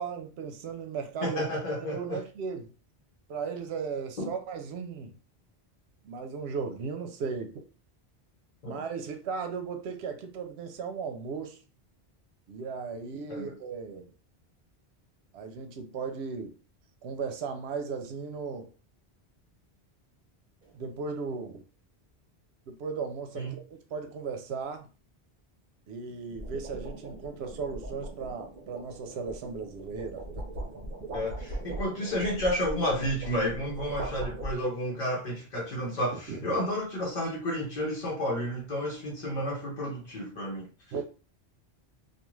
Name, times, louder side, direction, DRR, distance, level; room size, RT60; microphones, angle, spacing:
voice 1, 0.0-1.4 1.8-2.7 3.3-5.1 6.0-7.6 8.6-11.6 12.5-14.1 15.3-16.6 17.0-18.7 20.7-21.6 22.7-24.9 25.9-30.9 36.1-36.6 40.9-41.0, right 5 dB, 80° right, 0.8 m, -36 dB
voice 2, 1.2-2.2 4.2-4.3 8.6-8.8 13.3-13.6 23.3-23.6 31.1-40.7, equal, 50° left, 0.8 m, -31 dB
sound 1, 20.6-20.9 26.1-35.0, right 1 dB, 50° right, 1.0 m, -40 dB
2.4 x 2.3 x 3.1 m
omnidirectional pair, 1.1 m